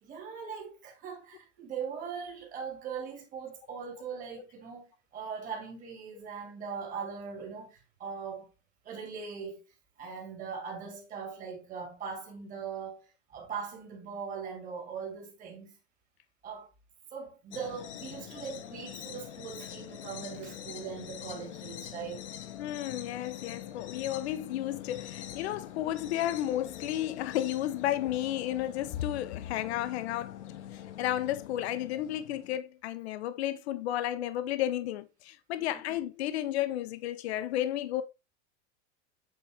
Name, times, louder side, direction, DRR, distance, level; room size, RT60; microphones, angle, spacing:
voice 1, 0.0-8.5 8.8-9.6 10.0-15.8 16.4-16.7 17.1-22.3 35.6-35.7, right 6 dB, 25° right, 2.1 m, -40 dB
sound 1, 17.5-32.6, left 11 dB, 85° left, 1.1 m, -44 dB
voice 2, 22.6-30.4 30.7-38.0, left 13 dB, 65° left, 0.8 m, -32 dB
8.0 x 3.9 x 3.4 m
supercardioid pair, 165°, 34 cm